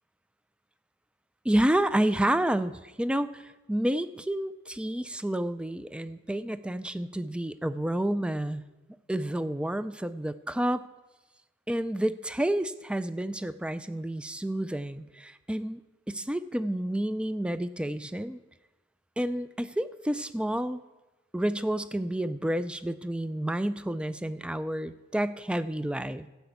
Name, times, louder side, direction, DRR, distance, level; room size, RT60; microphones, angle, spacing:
voice 1, 1.4-8.6 9.1-10.8 11.7-15.8 16.1-18.4 19.2-20.8 21.3-26.3, right 1 dB, 5° right, 14 dB, 0.3 m, -29 dB
12.5 x 5.9 x 8.1 m, 1.1 s
head